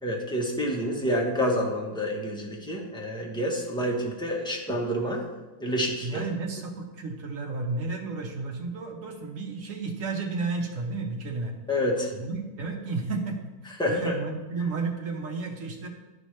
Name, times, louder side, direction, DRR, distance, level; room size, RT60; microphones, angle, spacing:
voice 1, 0.0-5.2 5.6-6.2 11.7-12.1 13.8-14.1, equal, 5° left, -2 dB, 0.8 m, -28 dB
voice 2, 6.0-11.5 12.1-15.9, right 3 dB, 55° right, 1 dB, 1.4 m, -32 dB
11.5 x 4.9 x 3.2 m, 1.2 s
omnidirectional pair, 1.7 m